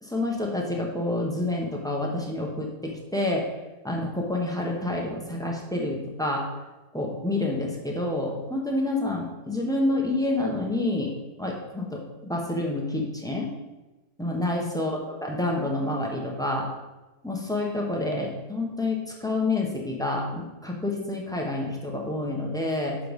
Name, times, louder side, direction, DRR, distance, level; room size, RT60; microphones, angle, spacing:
voice 1, 0.0-3.5 3.8-6.5 6.9-11.1 11.4-13.5 14.2-16.7 17.2-23.0, left 2 dB, 5° left, -1 dB, 0.9 m, -28 dB
7.3 x 4.8 x 5.3 m, 1.1 s
omnidirectional pair, 1.9 m